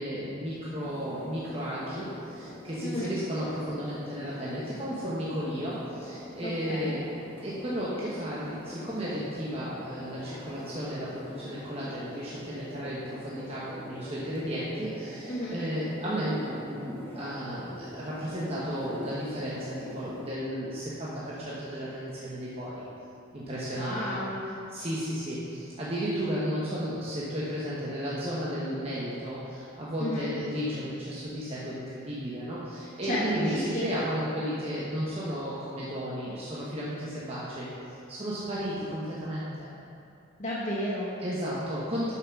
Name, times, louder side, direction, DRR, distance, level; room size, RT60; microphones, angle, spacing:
voice 1, 0.0-7.0 7.4-22.8 23.3-24.2 24.7-37.7 38.1-39.7 41.2-42.1, equal, 30° right, -8 dB, 1.1 m, -33 dB
sound 1, 0.8-20.3, left 1 dB, 10° left, 1.1 m, -44 dB
voice 2, 2.8-3.2 6.4-7.0 15.3-15.6 23.7-24.6 30.0-30.3 33.0-33.9 40.4-41.1, equal, 40° left, -7 dB, 1.0 m, -32 dB
7.5 x 6.0 x 5.9 m, 2.6 s
head